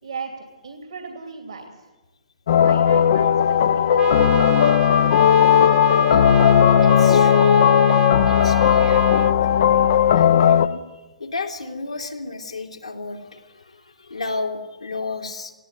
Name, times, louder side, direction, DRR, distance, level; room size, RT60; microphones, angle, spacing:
voice 1, 0.0-1.9 2.5-3.6 3.9-4.1, right 5 dB, 65° right, 4 dB, 2.6 m, -36 dB
sound 1, 2.5-10.7, left 8 dB, 50° left, 0.8 m, -16 dB
Trumpet, 4.0-9.3, right 10 dB, 20° right, 0.8 m, -31 dB
voice 2, 6.1-7.7 8.2-9.3 10.1-15.5, left 3 dB, 80° left, 1 dB, 3.0 m, -32 dB
20.0 x 16.5 x 8.2 m, 1.2 s
figure-of-eight pair, 120°, 3 cm